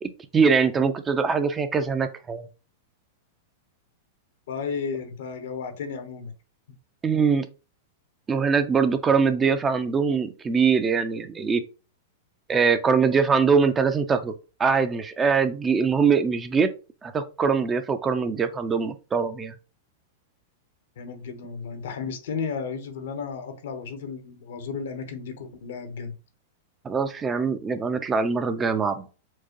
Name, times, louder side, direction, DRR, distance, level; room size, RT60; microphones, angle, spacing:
voice 1, 0.0-2.5 7.0-7.5 8.3-11.6 12.5-14.3 14.6-16.7 17.0-19.5 26.8-29.0, right 5 dB, 20° right, 10 dB, 0.4 m, -23 dB
voice 2, 4.5-6.3 21.0-26.1, left 5 dB, 70° left, 8 dB, 0.8 m, -33 dB
4.5 x 2.1 x 2.9 m, 0.32 s
hypercardioid pair, 115°, 0 cm